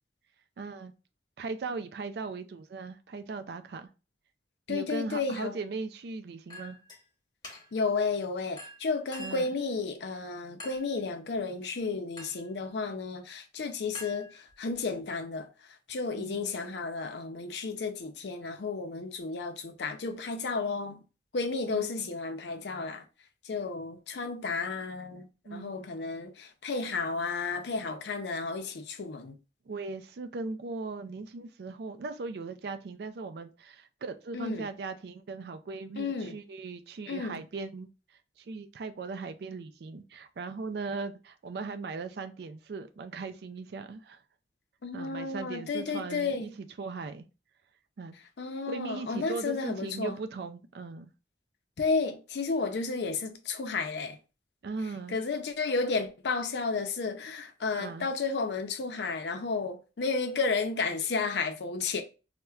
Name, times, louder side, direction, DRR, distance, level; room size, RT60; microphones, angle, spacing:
voice 1, 0.6-0.9 1.4-3.9 4.7-6.8 9.2-9.5 16.1-16.5 21.7-22.0 25.4-25.7 29.7-44.2 44.9-46.5 46.8-47.3 48.0-48.1 48.7-51.1 54.6-55.2 57.8-58.1, right 4 dB, 65° right, 0.4 m, -38 dB
voice 2, 4.7-5.5 7.5-15.5 15.9-21.0 21.3-23.0 23.4-29.4 34.3-34.7 36.0-36.4 37.1-37.4 44.8-46.5 48.4-50.2 51.8-54.2 55.1-62.0, left 4 dB, 75° left, 0.5 m, -32 dB
Chink clink, 6.5-7.0 7.4-7.9 8.6-9.5 10.6-11.0 12.2-12.5 13.9-14.7, left 1 dB, 25° left, 0.8 m, -46 dB
4.2 x 2.1 x 2.3 m
head